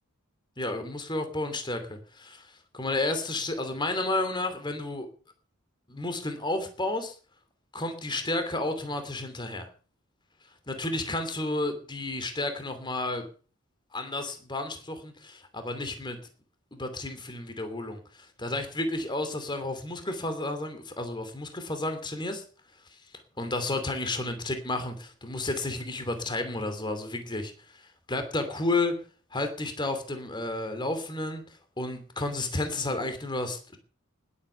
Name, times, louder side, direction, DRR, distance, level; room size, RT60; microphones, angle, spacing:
voice 1, 0.6-5.1 5.9-7.2 7.7-9.7 10.7-13.2 13.9-16.2 16.7-22.4 22.9-23.0 23.4-28.9 29.3-31.4 31.8-33.8, left 2 dB, 20° left, 7 dB, 2.9 m, -32 dB
19.5 x 8.5 x 7.0 m, 0.41 s
head